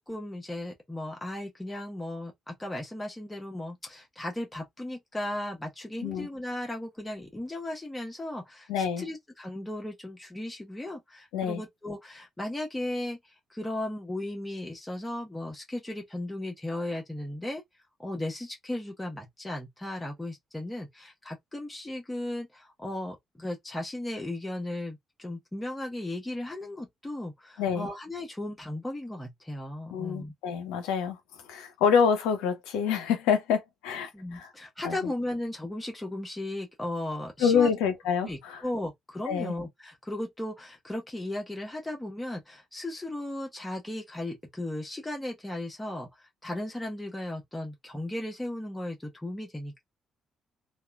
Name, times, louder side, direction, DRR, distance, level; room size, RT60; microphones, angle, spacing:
voice 1, 0.0-13.2 13.5-17.6 18.0-30.3 34.1-37.7 38.2-49.8, left 1 dB, 10° left, 0.9 m, -36 dB
voice 2, 8.7-9.0 11.3-11.6 27.6-27.9 29.9-31.2 31.5-34.5 34.8-35.0 37.4-38.6 39.3-39.5, left 7 dB, 65° left, 0.6 m, -26 dB
2.8 x 2.3 x 2.3 m
figure-of-eight pair, 45°, 0 cm